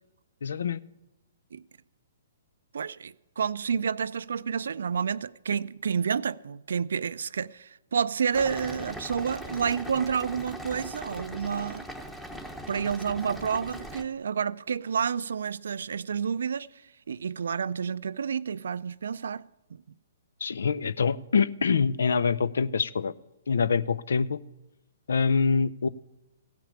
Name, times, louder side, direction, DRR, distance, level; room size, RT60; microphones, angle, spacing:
voice 1, 0.4-0.8 20.4-23.1 23.5-24.4 25.1-25.9, left 5 dB, 70° left, 0.5 m, -25 dB
voice 2, 2.7-11.9 12.7-16.7 17.1-19.4 19.7-19.8, right 7 dB, 70° right, 0.4 m, -29 dB
sound 1, 8.3-14.0, equal, 5° left, 1.1 m, -40 dB
16.0 x 5.9 x 8.4 m
hypercardioid pair, 125°, 0 cm